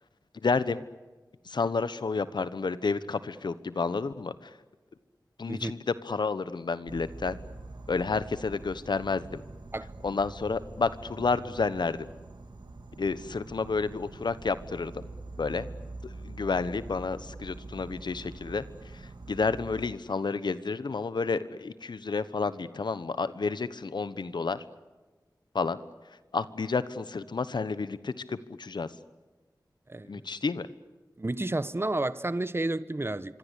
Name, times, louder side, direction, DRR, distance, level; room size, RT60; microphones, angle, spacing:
voice 1, 0.4-0.8 1.5-4.5 5.4-5.8 6.0-7.4 7.9-9.4 10.0-12.1 13.0-15.0 15.4-15.7 16.0-18.6 18.9-19.0 19.3-24.6 25.5-25.8 26.3-28.9 30.1-30.7, left 4 dB, 85° left, 1.1 m, -30 dB
Insect, 6.9-19.9, right 2 dB, 80° right, 2.2 m, -44 dB
voice 2, 29.9-30.3 31.2-33.4, right 2 dB, 30° right, 1.0 m, -31 dB
25.5 x 25.0 x 8.3 m
wide cardioid pair, 50°, 7 cm